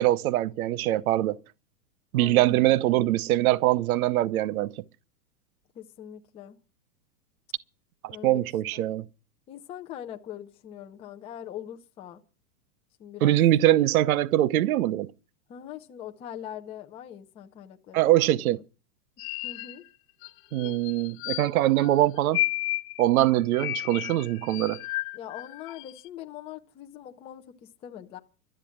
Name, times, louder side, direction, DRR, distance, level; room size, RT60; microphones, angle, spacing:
voice 1, 0.0-1.4 2.1-4.7 8.0-9.0 13.2-15.1 17.9-18.6 20.5-22.4 23.0-24.8, right 14 dB, 60° right, 0.8 m, -23 dB
voice 2, 2.1-3.0 5.7-6.6 8.1-8.4 8.7-8.9 9.5-12.2 13.0-13.4 15.5-18.1 18.5-18.6 19.4-19.8 25.1-28.2, left 10 dB, 10° left, 0.6 m, -42 dB
sound 1, 19.2-19.9 20.2-20.3 20.6-21.9 22.2-26.1, left 18 dB, 35° left, 1.0 m, -33 dB
12.5 x 8.9 x 8.5 m
supercardioid pair, 155°, 48 cm